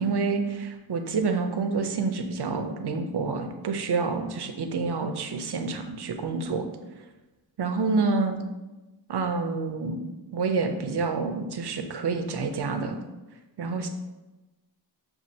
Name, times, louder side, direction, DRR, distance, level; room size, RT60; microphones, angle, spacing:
voice 1, 0.0-6.7 7.6-8.4 9.1-10.0 10.3-13.0 13.6-13.9, right 4 dB, 60° right, 6 dB, 0.6 m, -28 dB
6.2 x 2.4 x 2.7 m, 1.1 s
wide cardioid pair, 65°, 46 cm